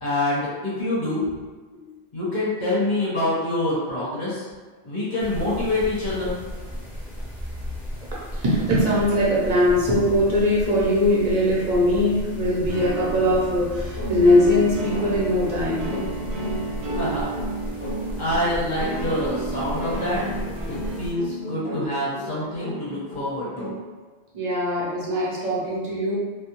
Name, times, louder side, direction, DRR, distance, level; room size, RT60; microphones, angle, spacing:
voice 1, 0.0-1.2 2.1-4.5 4.8-6.4 16.9-17.3 18.2-20.2 20.7-23.7, left 1 dB, 45° left, -8 dB, 1.0 m, -26 dB
sound 1, 5.2-21.1, equal, ahead, 0.5 m, -35 dB
voice 2, 8.3-15.9 24.3-26.1, left 1 dB, 45° right, -6 dB, 0.7 m, -21 dB
sound 2, 12.7-21.0, right 3 dB, 75° right, 0.8 m, -34 dB
sound 3, 14.0-23.9, equal, 65° left, 0.8 m, -35 dB
2.2 x 2.2 x 2.9 m, 1.3 s
omnidirectional pair, 1.1 m